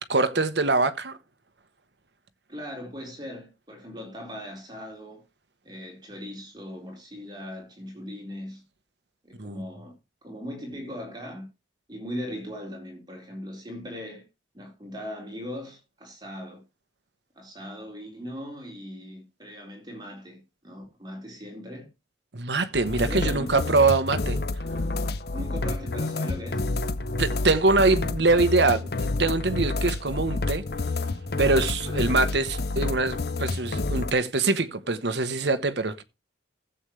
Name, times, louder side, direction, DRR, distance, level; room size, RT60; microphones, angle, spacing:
voice 1, 0.1-1.2 9.4-9.6 22.3-24.4 27.2-30.6 31.4-36.0, right 3 dB, 65° right, 1.0 m, -23 dB
voice 2, 2.5-5.2 5.6-8.6 9.2-10.0 10.2-11.5 11.9-14.2 14.5-16.6 17.3-21.9 23.1-23.6 25.3-26.7 31.9-32.2, equal, 20° right, 4.2 m, -39 dB
sound 1, 22.7-34.1, left 2 dB, 55° left, 0.7 m, -29 dB
15.0 x 8.0 x 3.2 m
head